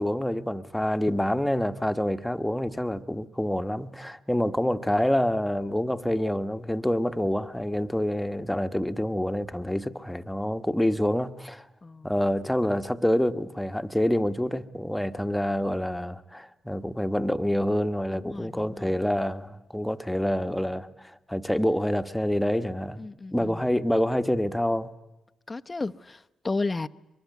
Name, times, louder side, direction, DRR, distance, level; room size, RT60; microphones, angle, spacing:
voice 1, 0.0-11.7 12.0-23.0 23.3-24.9, left 1 dB, 5° left, 1.5 m, -27 dB
voice 2, 11.8-12.1 18.1-19.0 23.0-23.7 25.5-26.9, left 3 dB, 30° left, 0.9 m, -33 dB
23.5 x 22.0 x 9.5 m
hypercardioid pair, 45°, 0 cm